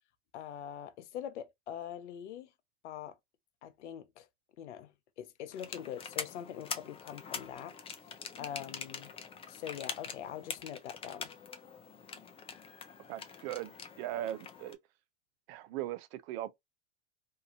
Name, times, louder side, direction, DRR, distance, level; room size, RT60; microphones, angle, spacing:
voice 1, 0.3-2.5 2.8-3.2 3.6-4.3 4.6-7.7 8.4-9.1 9.5-11.3, left 10 dB, 85° left, 0.6 m, -43 dB
sound 1, 5.6-14.7, left 6 dB, 15° left, 0.4 m, -44 dB
voice 2, 13.1-13.7 14.0-14.8 15.5-16.6, right 13 dB, 60° right, 0.5 m, -39 dB
2.7 x 2.5 x 2.3 m
hypercardioid pair, 95°, 34 cm